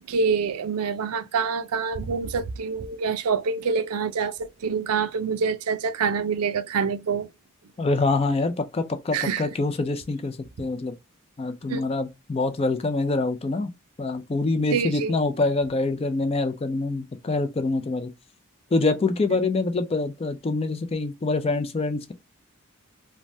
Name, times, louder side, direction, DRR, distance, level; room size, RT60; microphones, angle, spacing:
voice 1, 0.1-7.3 9.1-9.5 11.7-11.8 14.7-15.1, right 5 dB, 85° right, 0.4 m, -26 dB
voice 2, 7.8-10.9 11.4-13.7 14.0-18.1 18.7-22.1, left 3 dB, 25° left, 0.3 m, -25 dB
3.3 x 2.1 x 2.6 m
head